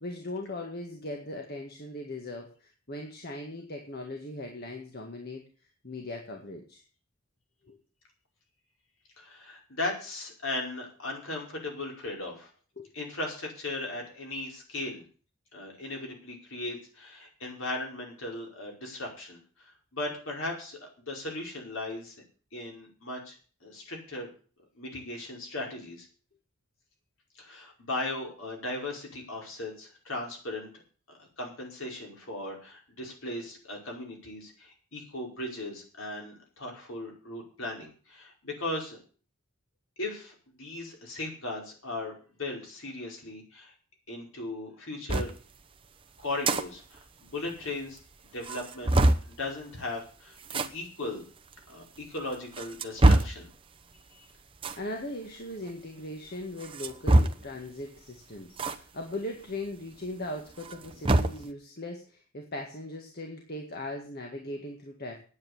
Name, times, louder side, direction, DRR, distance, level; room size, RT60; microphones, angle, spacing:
voice 1, 0.0-5.4 5.8-6.8 7.7-7.8 12.8-12.9 54.8-65.2, left 1 dB, 45° left, 2 dB, 1.9 m, -39 dB
voice 2, 9.2-12.5 12.9-15.0 15.5-19.4 19.9-22.1 22.5-23.4 23.6-24.3 24.8-26.1 27.4-30.7 31.4-39.0 40.0-42.1 42.4-43.7 44.1-45.3 46.2-48.0 48.3-51.2 51.7-53.5, left 2 dB, 65° left, 0 dB, 5.1 m, -37 dB
sound 1, 45.1-45.3 46.2-46.6 47.0-47.1 47.3-47.4 48.0-48.1 48.4-49.3 50.4-50.7 51.5-51.6 52.3-53.4 54.6-54.8 56.6-57.6 58.6-58.8 59.1-59.2 60.5-61.4, right 1 dB, 25° right, 0.8 m, -23 dB
9.4 x 9.4 x 8.7 m, 0.40 s
head